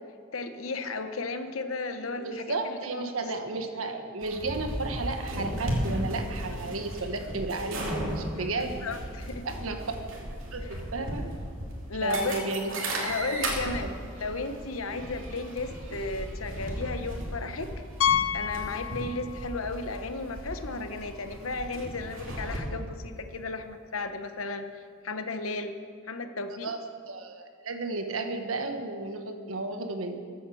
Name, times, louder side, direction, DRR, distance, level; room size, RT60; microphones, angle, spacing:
voice 1, 0.3-3.1 8.4-9.5 10.6-10.8 11.9-12.3 13.0-13.9 14.2-17.7 18.3-25.8 26.1-26.7, left 3 dB, 90° left, 8 dB, 1.1 m, -34 dB
voice 2, 2.2-8.8 9.4-9.8 10.5-11.2 12.0-12.8 13.8-13.9 26.6-26.8 27.1-30.2, right 2 dB, 90° right, 5 dB, 1.4 m, -33 dB
sound 1, 4.2-22.6, right 1 dB, 70° right, 2.7 m, -35 dB
Piano, 18.0-19.6 19.9-20.0 20.6-20.7 21.0-21.1 23.1-23.2, left 9 dB, 65° left, 0.5 m, -28 dB
14.5 x 8.4 x 7.0 m, 2.2 s
head